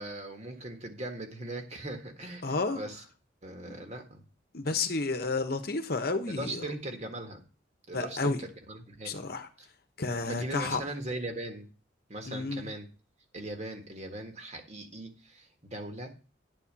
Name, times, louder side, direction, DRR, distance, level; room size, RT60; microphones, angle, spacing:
voice 1, 0.0-3.0 3.4-4.2 6.3-7.4 7.9-9.2 10.3-11.7 12.1-12.9 13.3-16.1, right 1 dB, 35° right, 1.7 m, -39 dB
voice 2, 2.4-2.8 3.7-3.8 4.5-6.7 7.9-8.5 9.0-9.5 10.0-10.8 12.3-12.7, left 3 dB, 55° left, 1.0 m, -31 dB
10.5 x 4.3 x 7.4 m
head